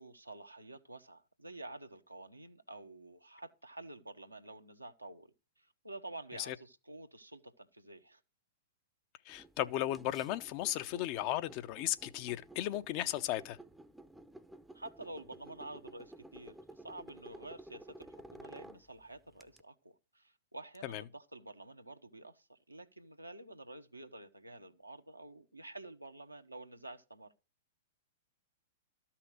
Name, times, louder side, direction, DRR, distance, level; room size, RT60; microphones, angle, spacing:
voice 1, 0.0-5.3 5.6-8.2 14.7-27.3, right 2 dB, 90° right, 1.1 m, -50 dB
voice 2, 9.3-13.6 20.8-21.0, left 14 dB, 40° left, 0.7 m, -35 dB
sound 1, 9.3-19.6, right 1 dB, 5° right, 0.7 m, -54 dB
13.0 x 5.8 x 6.4 m
figure-of-eight pair, 105°, 0 cm